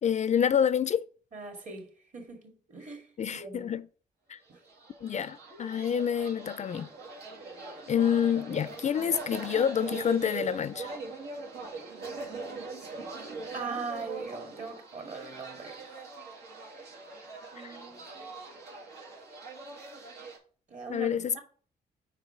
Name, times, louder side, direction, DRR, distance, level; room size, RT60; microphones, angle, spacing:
voice 1, 0.0-1.0 3.2-3.9 4.3-4.4 5.0-6.9 7.9-10.9 17.6-17.7 20.9-21.4, left 8 dB, 45° left, 0.4 m, -28 dB
voice 2, 1.3-3.7 4.5-4.6 13.5-16.1 16.6-16.7 17.5-18.3 20.7-21.4, right 4 dB, 45° right, 2.2 m, -41 dB
sound 1, 4.6-20.4, right 3 dB, 90° right, 2.2 m, -42 dB
4.8 x 4.7 x 5.6 m
cardioid pair, 75°, 17 cm